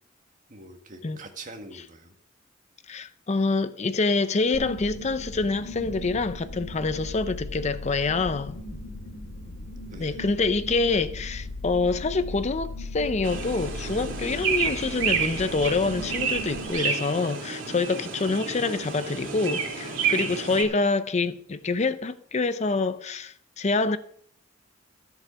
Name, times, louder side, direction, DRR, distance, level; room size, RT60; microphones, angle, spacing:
voice 1, 0.5-2.1 9.9-10.4, right 2 dB, 45° right, 1.8 m, -44 dB
voice 2, 2.9-8.6 10.0-24.0, left 3 dB, 35° left, 0.6 m, -26 dB
sound 1, 4.5-16.7, left 1 dB, 75° left, 2.3 m, -38 dB
sound 2, 13.2-20.6, right 6 dB, 80° right, 2.9 m, -30 dB
14.0 x 7.7 x 6.2 m
head